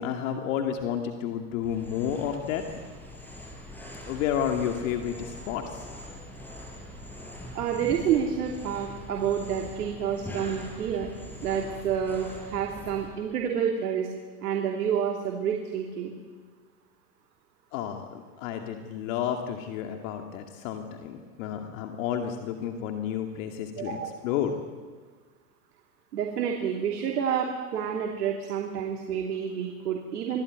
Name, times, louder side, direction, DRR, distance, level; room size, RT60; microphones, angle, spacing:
voice 1, 0.0-2.6 4.1-5.9 17.7-24.0 24.2-24.6, left 9 dB, 55° left, 4 dB, 2.4 m, -31 dB
sound 1, 1.6-13.1, left 1 dB, 5° left, 5.4 m, -43 dB
voice 2, 7.5-11.1 11.4-14.1 14.4-16.1 23.8-24.2 26.1-30.4, right 8 dB, 80° right, 1 dB, 3.1 m, -29 dB
25.0 x 17.0 x 9.5 m, 1.4 s
hypercardioid pair, 130°, 46 cm